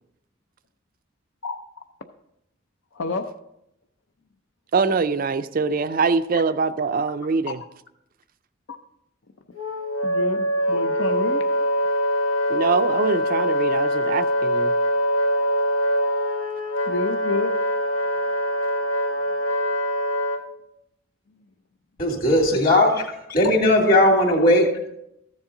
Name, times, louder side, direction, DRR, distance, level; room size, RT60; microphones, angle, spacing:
voice 1, 2.9-3.3 6.3-6.4 7.5-7.6 10.0-11.5 16.9-17.6, left 3 dB, 65° left, 0.5 m, -29 dB
voice 2, 4.7-7.6 12.5-14.7, right 4 dB, 45° right, 0.4 m, -23 dB
Wind instrument woodwind instrument, 9.6-20.4, equal, 90° left, 1.1 m, -23 dB
voice 3, 22.0-23.0 23.3-24.9, left 1 dB, 45° left, 2.4 m, -18 dB
14.0 x 7.2 x 3.8 m
head